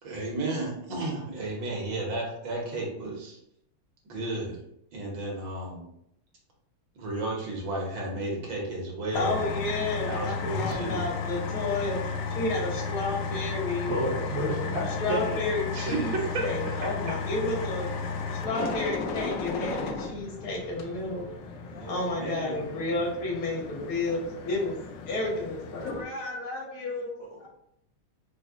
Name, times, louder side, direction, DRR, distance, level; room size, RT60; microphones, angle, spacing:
voice 1, 0.0-3.4 4.1-4.6 4.9-5.9 6.9-9.4 10.0-11.0 15.7-16.2 21.7-22.6, right 2 dB, 65° right, -2 dB, 1.5 m, -33 dB
sound 1, 9.1-26.0, left 4 dB, 90° left, 0.9 m, -34 dB
voice 2, 9.1-12.0 12.3-14.0 15.0-17.9 18.3-21.3 21.9-24.8 25.1-27.1, left 2 dB, 70° left, -2 dB, 1.9 m, -31 dB
voice 3, 13.9-15.4 16.6-16.7 27.2-27.5, right 1 dB, 50° right, -7 dB, 0.8 m, -31 dB
4.9 x 2.0 x 3.5 m, 0.77 s
omnidirectional pair, 2.4 m